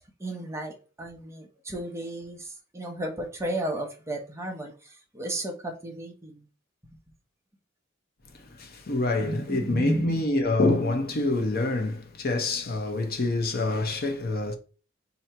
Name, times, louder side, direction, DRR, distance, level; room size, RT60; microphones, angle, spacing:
voice 1, 0.2-6.4 9.2-10.2, right 1 dB, 15° right, 0.8 m, -33 dB
voice 2, 8.6-14.5, left 2 dB, 50° left, 0.8 m, -26 dB
2.9 x 2.7 x 4.4 m
head